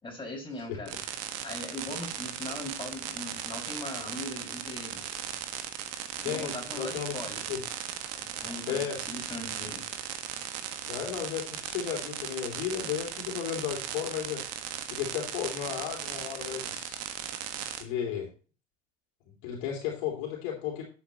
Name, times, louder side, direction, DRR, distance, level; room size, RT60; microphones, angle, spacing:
voice 1, 0.0-0.9 1.4-5.1 6.2-7.4 8.1-9.9, left 1 dB, 15° left, -1 dB, 5.6 m, -40 dB
sound 1, 0.9-17.8, right 10 dB, 50° right, 1.5 m, -37 dB
voice 2, 6.2-7.1 7.5-7.6 8.7-9.0 10.9-14.4 14.9-17.0 17.8-18.3 19.4-20.8, left 9 dB, 60° left, 0 dB, 3.0 m, -34 dB
11.0 x 8.1 x 3.0 m, 0.37 s
figure-of-eight pair, 75°, 33 cm